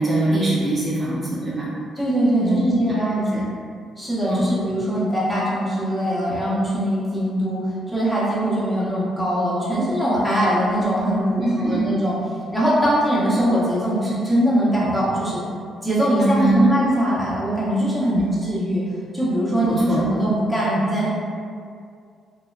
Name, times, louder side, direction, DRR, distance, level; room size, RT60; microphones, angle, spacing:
voice 1, 0.0-1.7 2.4-2.6 3.3-3.4 4.2-4.4 11.4-11.8 16.2-16.6 18.1-18.2 19.6-20.0, right 1 dB, 35° right, -7 dB, 0.5 m, -23 dB
voice 2, 2.0-3.5 4.0-12.2 12.5-15.4 15.8-18.8 19.1-21.1, equal, 5° left, -9 dB, 0.9 m, -21 dB
2.7 x 2.2 x 2.4 m, 2.2 s
cardioid pair, 90°, 0 cm